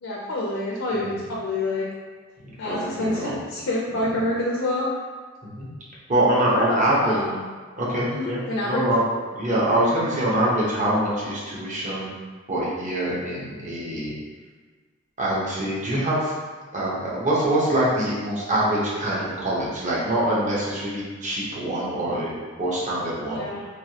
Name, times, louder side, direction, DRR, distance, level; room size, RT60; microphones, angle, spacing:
voice 1, 0.0-1.9 2.6-4.9 6.5-7.4 8.1-8.9 23.3-23.6, left 1 dB, 65° left, -4 dB, 0.5 m, -27 dB
voice 2, 2.4-3.4 3.9-4.1 5.4-5.7 6.1-7.2 7.8-9.0 9.3-12.1 12.5-14.1 15.2-16.3 16.7-22.3 22.6-23.4, right 1 dB, 35° right, -7 dB, 0.8 m, -24 dB
3.2 x 2.6 x 2.8 m, 1.5 s
head